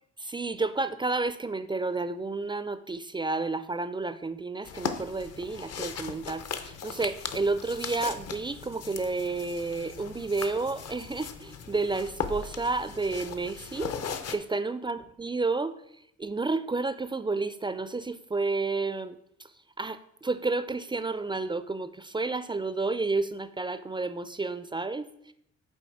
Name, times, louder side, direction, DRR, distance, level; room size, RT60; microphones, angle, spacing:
voice 1, 0.2-15.8 16.2-19.5 19.8-25.3, right 3 dB, 15° right, 12 dB, 0.3 m, -31 dB
sound 1, 4.6-14.4, left 6 dB, 55° left, 0.7 m, -38 dB
7.1 x 4.3 x 4.5 m, 0.76 s
cardioid pair, 90°, 30 cm